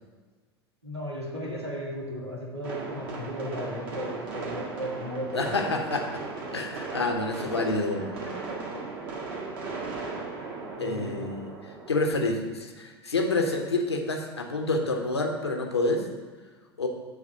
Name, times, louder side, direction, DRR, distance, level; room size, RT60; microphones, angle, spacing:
voice 1, 0.8-5.8 8.0-8.9 10.8-11.1, equal, 90° right, -3 dB, 1.5 m, -36 dB
sound 1, 2.6-12.1, right 4 dB, 55° right, 1.9 m, -37 dB
voice 2, 5.3-6.0 6.5-8.0 10.8-11.5 11.9-16.0 16.8-16.9, left 2 dB, 80° left, 3 dB, 0.9 m, -28 dB
7.7 x 3.6 x 6.2 m, 1.4 s
figure-of-eight pair, 80°, 14 cm